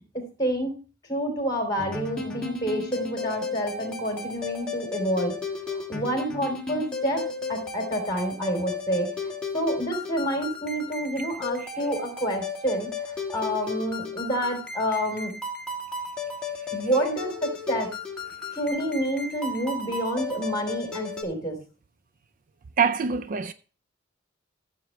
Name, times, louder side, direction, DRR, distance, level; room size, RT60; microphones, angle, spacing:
voice 1, 0.1-0.7 1.1-5.4 5.7-15.3 16.7-17.9 18.5-21.6, equal, 20° left, 3.3 m, -28 dB
sound 1, 1.8-21.2, left 4 dB, 5° left, 1.6 m, -34 dB
voice 2, 22.8-23.5, right 6 dB, 45° right, 0.4 m, -24 dB
14.5 x 7.5 x 3.2 m
head